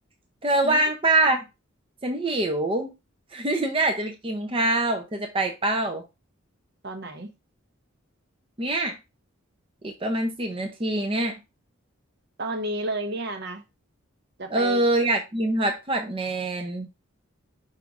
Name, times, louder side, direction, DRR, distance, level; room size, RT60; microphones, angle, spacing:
voice 1, 0.4-1.4 2.0-2.9 3.3-6.0 8.6-8.9 9.8-11.3 14.5-16.9, right 2 dB, 25° right, 0.7 m, -24 dB
voice 2, 6.8-7.3 12.4-13.6 14.4-14.8, right 1 dB, 55° right, 1.1 m, -31 dB
5.7 x 3.9 x 4.7 m
head